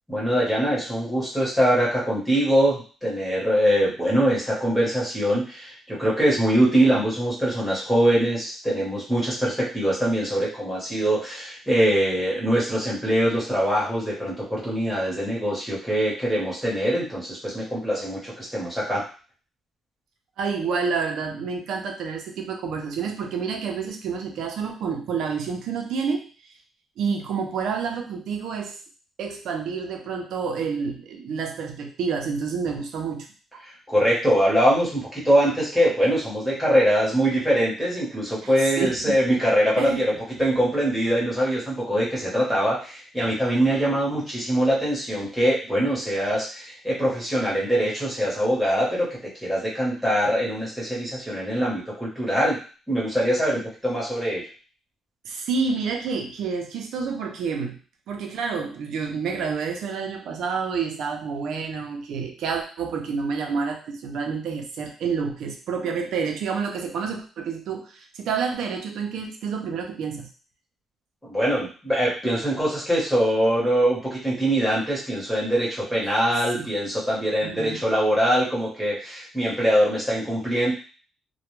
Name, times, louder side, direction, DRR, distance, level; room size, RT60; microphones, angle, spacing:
voice 1, 0.1-19.0 33.6-40.1 40.4-49.1 49.4-52.6 52.9-54.4 71.2-80.7, equal, ahead, -6 dB, 0.9 m, -23 dB
voice 2, 20.4-26.5 27.0-28.8 29.2-33.3 38.4-39.2 39.8-40.0 55.2-57.8 58.1-70.3 76.5-76.7 77.4-77.8, right 5 dB, 65° right, 3 dB, 0.5 m, -29 dB
2.2 x 2.1 x 3.0 m, 0.38 s
cardioid pair, 170°, 0 cm